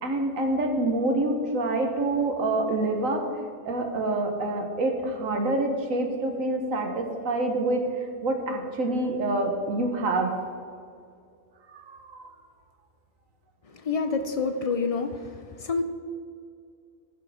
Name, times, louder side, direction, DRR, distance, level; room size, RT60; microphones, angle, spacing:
voice 1, 0.0-3.2 3.6-10.3 11.7-12.3, right 2 dB, 85° right, 3 dB, 1.6 m, -27 dB
voice 2, 13.8-15.3 15.6-15.8, left 4 dB, 60° left, 7 dB, 0.4 m, -27 dB
15.0 x 5.5 x 4.9 m, 2.3 s
omnidirectional pair, 1.4 m